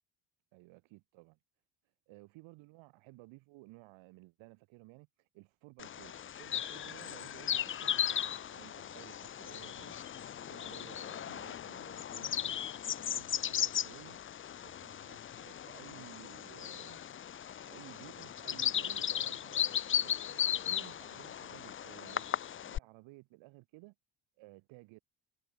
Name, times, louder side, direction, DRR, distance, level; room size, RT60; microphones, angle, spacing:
voice 1, 0.5-1.4 2.1-10.0 10.3-12.3 12.8-14.2 14.5-17.0 17.7-22.4 22.7-23.9 24.4-25.0, right 22 dB, 80° right, 4.1 m, -56 dB
Bird vocalization bird call bird song, 5.8-22.8, left 9 dB, 30° left, 0.5 m, -37 dB
supercardioid pair, 75°, 46 cm